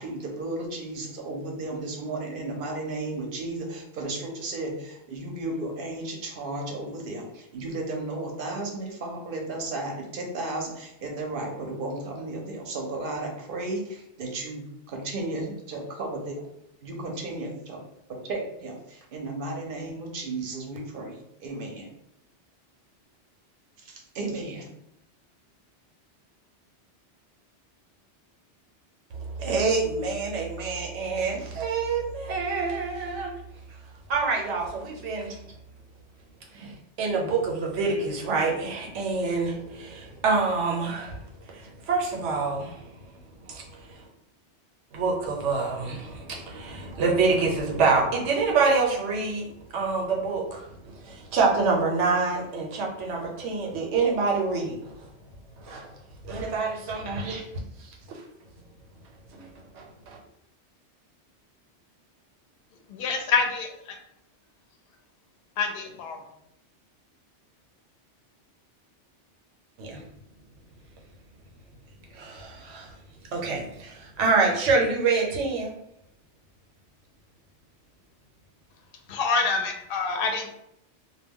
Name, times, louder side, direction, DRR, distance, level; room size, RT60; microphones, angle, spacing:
voice 1, 0.0-16.5 16.8-17.8 18.1-21.9 23.8-24.7 29.4-29.5 36.5-36.7, right 2 dB, 60° right, 0 dB, 0.7 m, -34 dB
voice 2, 29.2-33.4 34.1-35.4 36.5-41.2 41.5-42.9 43.4-44.0 44.9-55.0 55.6-55.9 56.2-57.9 59.3-59.5 59.7-60.2 69.8-70.0 72.1-73.0 73.3-75.7, right 4 dB, 90° right, 0 dB, 1.0 m, -27 dB
voice 3, 62.9-63.9 65.6-66.2 79.1-80.6, left 4 dB, 60° left, 3 dB, 0.7 m, -27 dB
2.2 x 2.2 x 3.5 m, 0.79 s
omnidirectional pair, 1.2 m